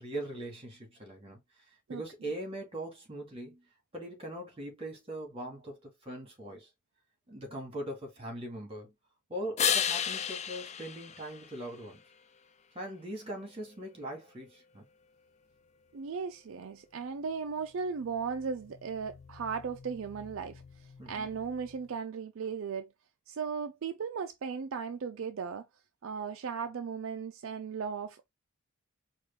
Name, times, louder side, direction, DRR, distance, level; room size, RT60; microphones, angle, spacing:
voice 1, 0.0-1.4 1.9-3.6 3.9-6.7 7.3-8.9 9.3-12.0 12.7-14.9 21.0-21.3, right 1 dB, 25° right, 1.8 m, -41 dB
sound 1, 9.6-12.1 17.9-21.9, left 8 dB, 30° left, 0.3 m, -36 dB
voice 2, 15.9-22.9 23.3-25.7 26.0-28.3, right 6 dB, 60° right, 0.4 m, -36 dB
4.8 x 2.4 x 3.3 m
head